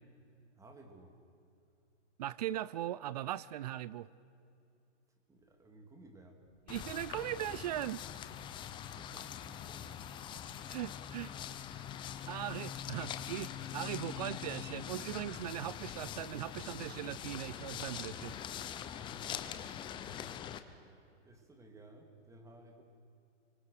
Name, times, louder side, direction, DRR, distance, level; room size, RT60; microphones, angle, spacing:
voice 1, 0.6-1.2 5.3-6.4 8.5-9.9 19.1-22.8, right 2 dB, 10° right, 2.7 m, -58 dB
voice 2, 2.2-4.1 6.7-8.0 10.7-11.3 11.7-11.9 12.3-18.4, right 13 dB, 35° right, 0.5 m, -39 dB
sound 1, 6.7-20.6, left 9 dB, 15° left, 0.7 m, -43 dB
28.5 x 25.0 x 6.6 m
hypercardioid pair, 145°, 36 cm